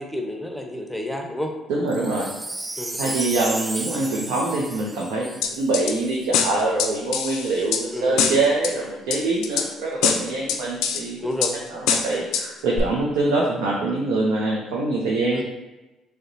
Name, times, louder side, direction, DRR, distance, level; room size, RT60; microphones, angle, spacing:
voice 1, 0.0-1.5 2.8-3.2 7.9-8.2 11.2-11.6 15.3-15.4, left 1 dB, ahead, 2 dB, 0.8 m, -30 dB
voice 2, 1.7-2.3 3.0-5.3 5.5-11.2 11.7-15.4, right 2 dB, 75° right, -3 dB, 0.6 m, -24 dB
Wind chime, 1.9-6.3 6.8-6.9, right 2 dB, 20° right, 0.3 m, -33 dB
sound 1, 5.4-5.9 6.3-7.8 8.2-8.7 9.1-9.7 10.0-11.0 11.4-11.5 11.9-12.4 12.8-12.9, left 7 dB, 75° left, 0.4 m, -23 dB
6.3 x 2.2 x 2.7 m, 1.0 s
hypercardioid pair, 55°, 0 cm